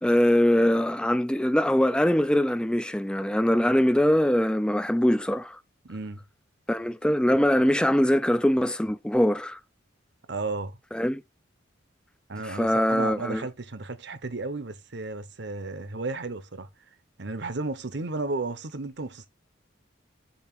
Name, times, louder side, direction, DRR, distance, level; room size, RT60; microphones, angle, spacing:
voice 1, 0.0-5.6 6.7-9.6 10.9-11.2 12.5-13.4, equal, 5° left, 0.3 m, -22 dB
voice 2, 5.8-6.2 10.3-10.8 12.3-16.7 17.2-19.3, right 3 dB, 55° right, 0.9 m, -33 dB
7.1 x 2.8 x 5.9 m
head